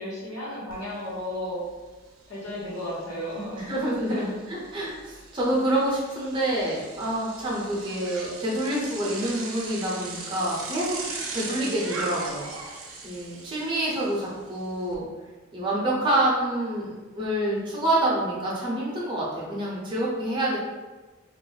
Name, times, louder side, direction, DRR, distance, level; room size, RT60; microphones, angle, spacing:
voice 1, 0.0-1.6 2.3-3.7 4.1-4.3 11.4-12.0, left 1 dB, 90° left, -7 dB, 1.1 m, -34 dB
Bicycle, 0.7-0.8 1.2-14.9, right 3 dB, 80° right, 0.5 m, -39 dB
voice 2, 3.6-11.0 11.3-12.7 13.0-15.1 15.5-20.6, right 1 dB, 25° right, -6 dB, 0.7 m, -27 dB
2.5 x 2.0 x 3.9 m, 1.2 s
head